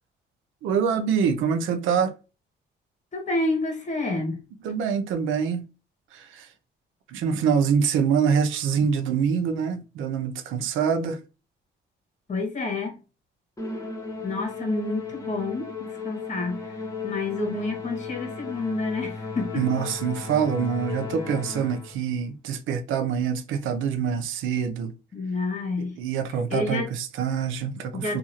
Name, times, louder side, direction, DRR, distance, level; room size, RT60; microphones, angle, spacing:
voice 1, 0.6-2.1 4.6-5.6 6.1-6.5 7.1-11.2 19.6-24.9 25.8-28.2, right 7 dB, 90° right, 0.5 m, -25 dB
voice 2, 3.1-4.4 12.3-12.9 14.2-19.7 25.1-25.9 26.5-26.9 28.0-28.2, left 3 dB, 35° left, 1.3 m, -29 dB
Musical instrument, 13.6-22.1, left 4 dB, 15° left, 1.1 m, -35 dB
2.8 x 2.5 x 2.8 m
cardioid pair, 90°, 20 cm